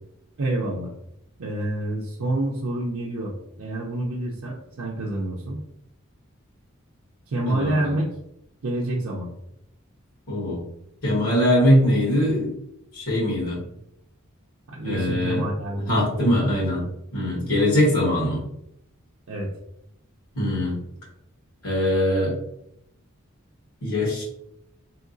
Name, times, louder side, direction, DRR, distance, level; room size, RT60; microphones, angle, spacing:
voice 1, 0.4-0.9 1.4-5.6 7.3-8.1 8.6-9.3 14.7-16.6 19.3-19.5, right 1 dB, 70° right, -4 dB, 0.5 m, -28 dB
voice 2, 7.5-7.9 10.3-10.6 11.0-12.5 12.9-13.6 14.8-15.4 15.9-16.8 17.1-18.4 20.3-20.7 21.6-22.3 23.8-24.2, left 1 dB, 90° left, -4 dB, 1.3 m, -21 dB
3.8 x 2.8 x 2.6 m, 0.78 s
head